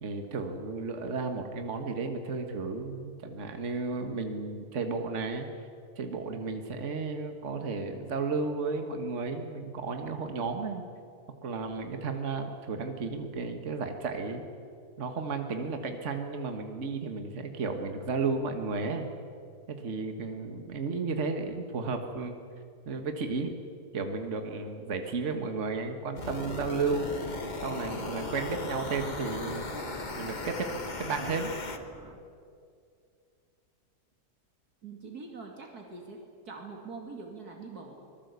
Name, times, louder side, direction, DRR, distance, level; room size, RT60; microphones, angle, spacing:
voice 1, 0.0-5.5 6.0-10.8 11.4-14.4 15.0-19.1 19.7-22.4 22.9-23.5 23.9-27.2 27.6-29.7 30.2-30.7 31.0-31.5, right 4 dB, 45° right, 5 dB, 1.9 m, -33 dB
sound 1, 26.2-31.8, left 3 dB, 30° left, 1.3 m, -38 dB
sound 2, 26.2-32.1, equal, 10° right, 2.3 m, -45 dB
voice 2, 34.8-38.0, right 4 dB, 65° right, 1 dB, 2.9 m, -44 dB
25.0 x 20.0 x 8.2 m, 2.4 s
omnidirectional pair, 1.8 m